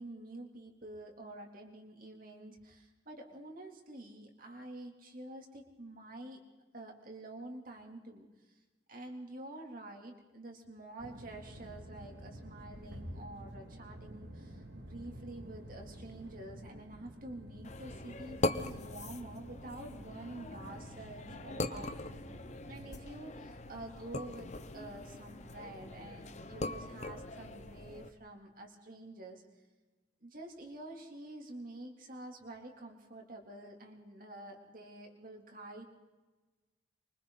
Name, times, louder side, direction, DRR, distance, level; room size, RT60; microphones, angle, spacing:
voice 1, 0.0-6.4 6.7-8.6 8.9-21.9 22.7-29.4 30.2-35.8, right 1 dB, 50° right, 1 dB, 3.4 m, -48 dB
sound 1, 11.0-22.9, right 1 dB, 70° right, 2.6 m, -50 dB
sound 2, 17.6-28.1, left 2 dB, 40° left, 1.1 m, -41 dB
28.0 x 24.5 x 4.1 m, 1.2 s
head